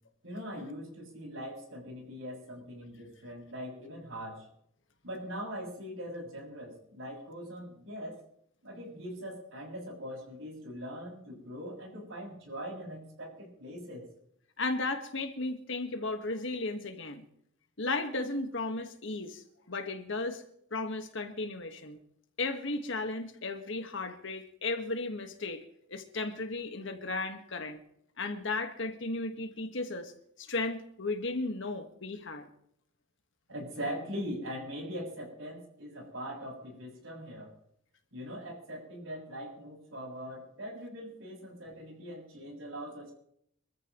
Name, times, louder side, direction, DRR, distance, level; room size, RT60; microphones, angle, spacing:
voice 1, 0.2-4.5 5.0-8.2 8.6-14.1 33.5-37.5 38.1-43.1, equal, 80° right, -1 dB, 6.5 m, -41 dB
voice 2, 14.6-17.2 17.8-20.4 20.7-22.0 22.4-25.6 25.9-27.8 28.2-30.1 30.4-32.5, left 3 dB, 65° left, 7 dB, 1.6 m, -35 dB
25.0 x 14.0 x 3.1 m, 0.69 s
head